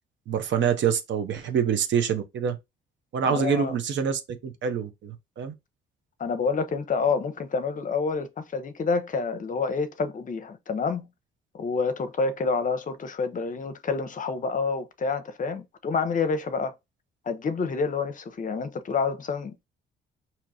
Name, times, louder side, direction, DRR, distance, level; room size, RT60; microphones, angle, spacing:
voice 1, 0.3-2.6 3.1-5.5, right 7 dB, 65° right, 0.8 m, -26 dB
voice 2, 3.3-3.7 6.2-11.1 11.5-16.7 17.3-19.6, left 4 dB, 40° left, 0.7 m, -28 dB
4.6 x 2.9 x 2.6 m
cardioid pair, 90°, 20 cm